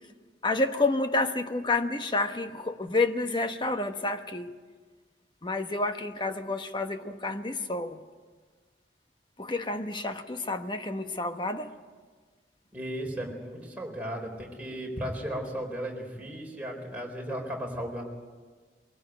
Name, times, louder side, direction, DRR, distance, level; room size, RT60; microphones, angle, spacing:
voice 1, 0.4-4.5 5.4-8.0 9.4-11.7, left 2 dB, 25° left, 7 dB, 1.1 m, -29 dB
voice 2, 12.7-18.1, equal, 10° right, -1 dB, 4.1 m, -35 dB
23.0 x 16.5 x 9.2 m, 1.5 s
head